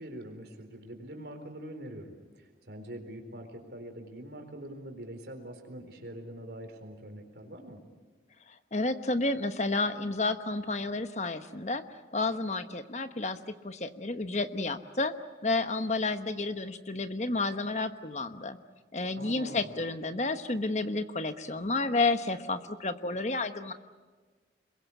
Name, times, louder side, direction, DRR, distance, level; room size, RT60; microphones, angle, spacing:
voice 1, 0.0-7.8 19.2-19.7, right 1 dB, 70° right, 5 dB, 4.1 m, -44 dB
voice 2, 8.7-11.8 12.1-13.4 13.6-15.1 15.4-18.6 18.9-23.7, left 3 dB, 40° left, 9 dB, 1.1 m, -31 dB
26.5 x 22.5 x 8.5 m, 1.4 s
head